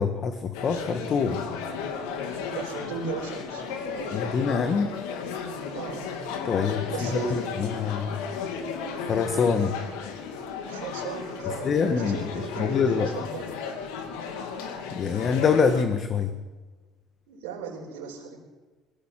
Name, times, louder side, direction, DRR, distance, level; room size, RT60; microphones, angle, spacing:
voice 1, 0.0-1.4 4.1-4.9 6.4-7.3 7.6-8.2 9.0-9.8 11.6-13.1 14.9-16.3, left 6 dB, 45° left, 8 dB, 1.7 m, -25 dB
sound 1, 0.5-15.8, left 6 dB, 80° left, 2.5 m, -34 dB
voice 2, 2.5-4.3 5.7-6.2 6.9-7.5 10.7-13.5 17.3-18.4, right 5 dB, 85° right, -4 dB, 4.4 m, -37 dB
21.0 x 16.0 x 7.7 m, 1.3 s
supercardioid pair, 75°, 0 cm